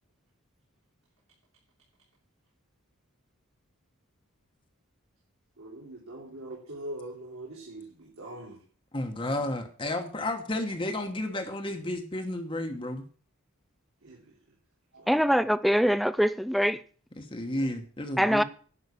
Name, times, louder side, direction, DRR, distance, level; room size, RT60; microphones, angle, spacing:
voice 1, 5.6-8.6 14.0-14.2 14.9-15.2, right 1 dB, 85° right, 3.4 m, -42 dB
voice 2, 8.9-13.1 17.2-18.4, left 1 dB, 25° left, 1.2 m, -32 dB
voice 3, 15.1-16.8 18.2-18.4, equal, ahead, 0.4 m, -23 dB
11.0 x 5.7 x 8.5 m
head